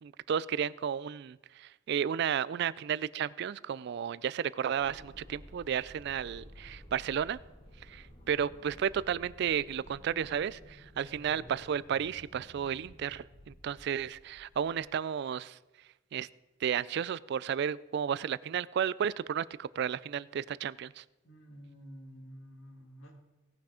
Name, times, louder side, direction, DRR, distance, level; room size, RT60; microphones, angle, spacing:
voice 1, 0.0-7.4 7.9-15.6 16.1-16.3 16.6-21.0, right 8 dB, 60° right, 20 dB, 0.3 m, -33 dB
sound 1, 4.8-15.0, equal, 30° left, 1.9 m, -53 dB
voice 2, 21.2-23.1, equal, 80° left, 1 dB, 2.7 m, -50 dB
17.5 x 6.0 x 4.9 m, 1.1 s
head